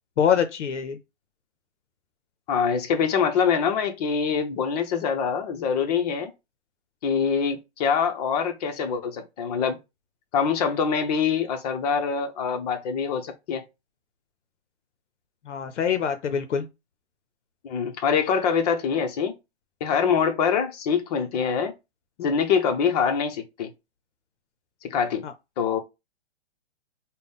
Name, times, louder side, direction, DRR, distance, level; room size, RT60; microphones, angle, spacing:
voice 1, 0.2-1.0 15.5-16.7 25.2-25.3, left 8 dB, 85° left, 0.6 m, -24 dB
voice 2, 2.5-6.3 7.0-9.8 10.3-13.6 17.6-19.3 19.8-21.7 22.2-23.7 24.9-25.2 25.6-25.8, left 6 dB, 35° left, 0.7 m, -24 dB
3.9 x 2.1 x 3.4 m
hypercardioid pair, 140°, 35 cm